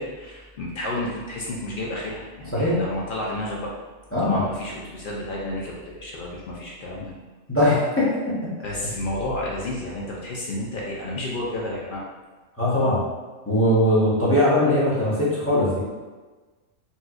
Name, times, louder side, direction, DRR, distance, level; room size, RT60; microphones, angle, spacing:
voice 1, 0.0-3.7 4.2-7.1 8.6-12.0, left 1 dB, 60° left, -4 dB, 0.5 m, -31 dB
voice 2, 4.1-4.4 7.5-8.1 12.6-13.0 13.5-15.8, left 1 dB, 10° left, -9 dB, 0.8 m, -20 dB
4.1 x 2.3 x 2.4 m, 1.3 s
omnidirectional pair, 1.4 m